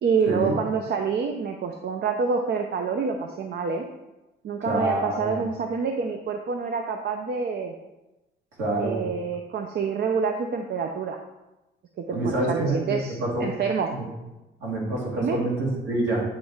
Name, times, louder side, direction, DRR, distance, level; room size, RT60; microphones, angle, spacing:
voice 1, 0.0-3.8 4.4-7.7 8.7-11.2 12.0-13.9 15.2-15.4, right 5 dB, 55° right, 4 dB, 0.6 m, -27 dB
voice 2, 4.6-5.4 8.6-9.1 12.1-13.5 13.9-14.1 14.6-16.2, right 1 dB, 75° right, -4 dB, 2.5 m, -27 dB
8.3 x 3.1 x 4.7 m, 1.0 s
cardioid pair, 90°, 20 cm